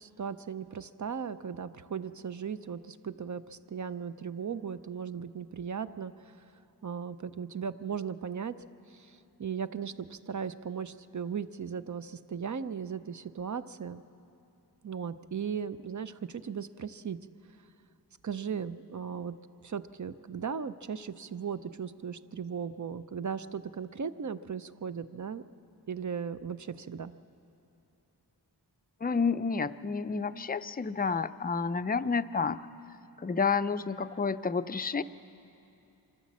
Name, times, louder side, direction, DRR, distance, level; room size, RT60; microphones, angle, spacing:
voice 1, 0.0-6.1 6.8-8.6 8.9-9.1 9.4-14.0 14.8-17.2 18.2-19.3 19.6-25.4 25.9-27.1, right 7 dB, 45° right, 13 dB, 0.6 m, -37 dB
voice 2, 29.0-32.6 33.2-35.0, left 5 dB, 25° left, 11 dB, 0.4 m, -30 dB
26.0 x 14.0 x 7.4 m, 2.8 s
wide cardioid pair, 90°, 41 cm